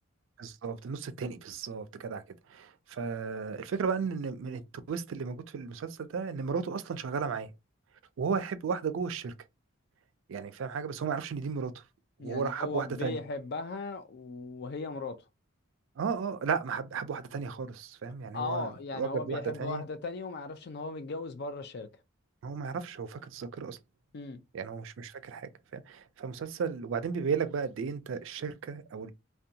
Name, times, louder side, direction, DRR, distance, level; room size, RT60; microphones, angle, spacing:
voice 1, 0.4-2.2 2.5-4.6 4.9-7.5 8.2-9.3 10.3-11.8 12.2-13.2 16.0-19.8 22.4-23.8 24.5-29.1, right 5 dB, 65° right, 0.3 m, -34 dB
voice 2, 12.2-15.2 18.3-21.9 24.1-24.4, left 3 dB, 50° left, 0.4 m, -37 dB
2.6 x 2.2 x 2.7 m
head